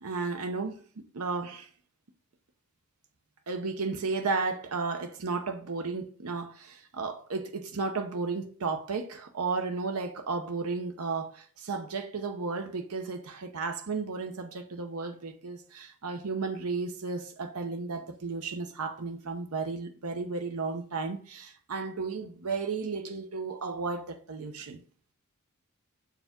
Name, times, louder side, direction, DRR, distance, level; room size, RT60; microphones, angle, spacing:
voice 1, 0.0-0.8 1.1-1.7 3.5-24.8, right 4 dB, 85° right, 0.8 m, -33 dB
6.8 x 4.8 x 3.6 m
head